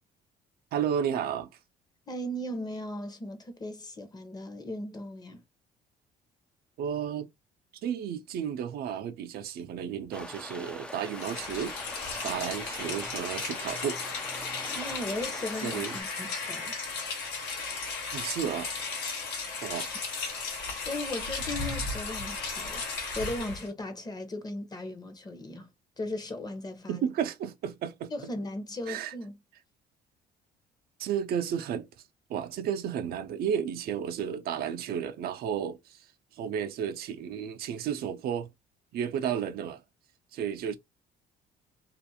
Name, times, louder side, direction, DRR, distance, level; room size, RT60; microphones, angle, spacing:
voice 1, 0.7-1.5 6.8-7.3 7.8-11.7 12.2-14.0 15.6-15.9 16.2-16.3 18.1-18.7 19.6-19.9 26.9-28.1 28.9-29.1 31.0-31.9 32.3-36.1 36.3-38.5 38.9-39.8 40.3-40.8, right 8 dB, 65° right, 0.5 m, -32 dB
voice 2, 2.1-5.4 14.7-16.7 20.5-25.7 26.0-27.1 28.1-29.4, left 1 dB, 25° left, 0.7 m, -37 dB
sound 1, 10.1-16.0, left 1 dB, 5° left, 0.3 m, -43 dB
Rain, 11.1-23.7, left 4 dB, 85° left, 1.2 m, -35 dB
2.4 x 2.4 x 2.7 m
cardioid pair, 110°, 17 cm